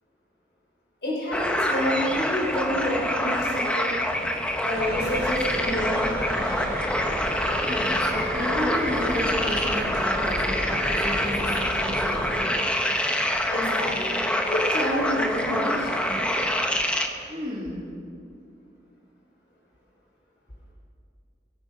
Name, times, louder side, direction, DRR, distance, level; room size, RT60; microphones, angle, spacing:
voice 1, 1.0-3.9 4.6-6.7 13.5-14.2 14.5-16.2, equal, 70° left, -4 dB, 3.8 m, -28 dB
sound 1, 1.3-17.1, left 1 dB, 5° left, 0.9 m, -26 dB
sound 2, 4.7-12.3, equal, 55° right, 4.7 m, -34 dB
voice 2, 7.6-12.6 17.3-17.9, left 1 dB, 25° right, -6 dB, 2.9 m, -32 dB
24.0 x 9.0 x 5.3 m, 2.5 s
head